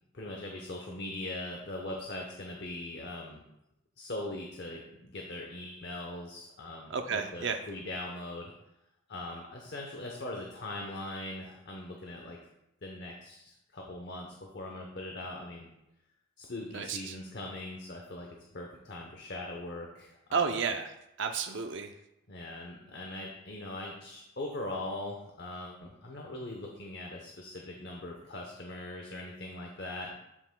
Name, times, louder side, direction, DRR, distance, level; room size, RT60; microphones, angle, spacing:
voice 1, 0.1-3.4 4.0-8.5 9.1-12.4 12.8-15.8 16.4-20.6 22.3-30.1, left 1 dB, 50° left, 0 dB, 0.8 m, -41 dB
voice 2, 6.9-7.6 16.7-17.2 20.3-20.9 21.2-21.9, right 5 dB, 55° right, 5 dB, 0.4 m, -32 dB
12.0 x 5.8 x 2.2 m, 0.87 s
head